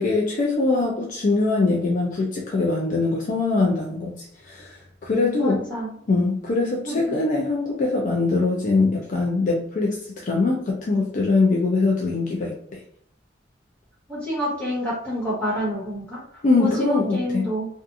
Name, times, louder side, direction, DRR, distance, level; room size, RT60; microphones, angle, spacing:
voice 1, 0.0-5.6 6.1-12.8 16.4-17.5, left 3 dB, 45° left, -1 dB, 0.4 m, -22 dB
voice 2, 5.4-5.9 6.8-7.2 14.1-17.7, equal, 5° left, -8 dB, 1.3 m, -28 dB
2.6 x 2.4 x 2.4 m, 0.66 s
head